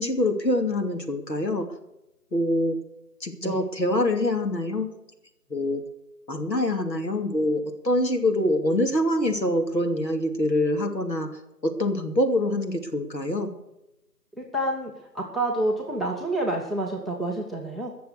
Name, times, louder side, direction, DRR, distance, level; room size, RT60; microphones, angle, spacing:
voice 1, 0.0-1.7 2.3-2.8 3.2-4.9 5.5-5.8 6.3-11.3 11.6-13.5, left 1 dB, 90° left, 5 dB, 2.6 m, -25 dB
voice 2, 14.3-17.9, right 1 dB, ahead, -3 dB, 0.7 m, -28 dB
16.0 x 6.9 x 8.1 m, 0.89 s
figure-of-eight pair, 165°, 49 cm